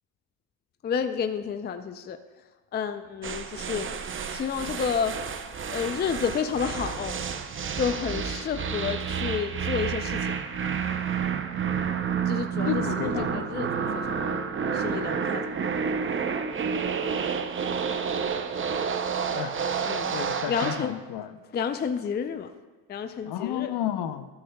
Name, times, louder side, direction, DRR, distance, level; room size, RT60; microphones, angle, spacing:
voice 1, 0.8-2.2 2.7-3.9 4.3-5.2 5.7-7.2 7.8-10.3 12.3-14.4 14.7-15.7 19.9-20.1 20.5-20.9 21.5-22.5 22.9-23.7, left 7 dB, 20° left, 9 dB, 0.4 m, -30 dB
sound 1, 3.2-20.9, right 6 dB, 25° right, 0.6 m, -30 dB
voice 2, 12.6-13.5 19.3-19.6 20.1-21.4 23.2-24.3, left 11 dB, 55° left, 11 dB, 0.8 m, -32 dB
12.5 x 11.0 x 2.3 m, 1.3 s
supercardioid pair, 80°, 48 cm